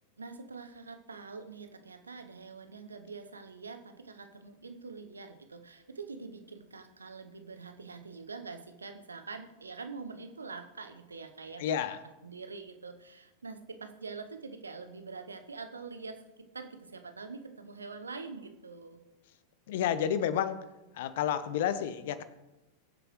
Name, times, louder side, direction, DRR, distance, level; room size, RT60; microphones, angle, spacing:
voice 1, 0.2-11.8 12.2-19.0, right 4 dB, 75° right, 8 dB, 0.9 m, -45 dB
voice 2, 11.6-12.0 19.7-20.6 20.9-22.2, left 9 dB, 55° left, 14 dB, 0.8 m, -30 dB
21.5 x 7.9 x 3.1 m, 1.0 s
figure-of-eight pair, 90°, 0 cm